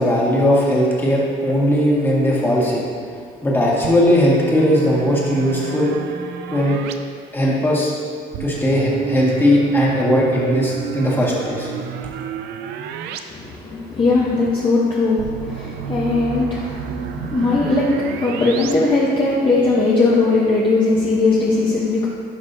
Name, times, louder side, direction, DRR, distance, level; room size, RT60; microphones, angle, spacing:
voice 1, 0.0-2.8 3.4-5.9 6.5-6.8 7.3-7.9 8.4-11.7, equal, 15° left, -5 dB, 1.7 m, -18 dB
sound 1, 3.8-6.9 8.3-13.2 13.5-13.6 15.2-18.7, right 8 dB, 80° right, 0.5 m, -30 dB
voice 2, 13.3-22.1, left 3 dB, 30° left, -5 dB, 0.9 m, -19 dB
11.0 x 5.4 x 2.7 m, 2.1 s
cardioid pair, 110°, 17 cm